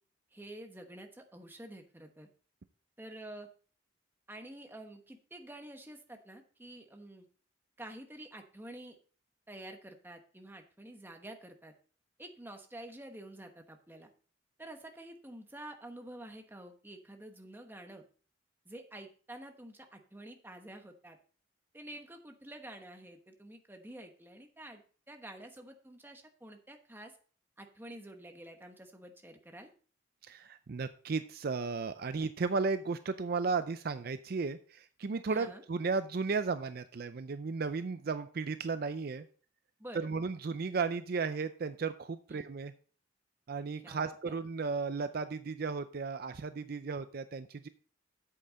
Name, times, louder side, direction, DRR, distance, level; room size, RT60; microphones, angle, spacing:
voice 1, 0.3-2.3 3.0-3.5 4.3-7.2 7.8-9.0 9.5-11.7 12.2-14.1 14.6-18.0 18.6-21.2 21.7-24.8 25.1-27.1 27.6-29.7 35.3-35.6 39.8-40.1 42.3-42.5 43.8-44.4, right 1 dB, 10° right, 4 dB, 1.1 m, -49 dB
voice 2, 30.2-39.2 39.9-42.7 43.5-47.7, right 4 dB, 50° right, 11 dB, 0.5 m, -34 dB
8.6 x 7.8 x 4.1 m, 0.42 s
head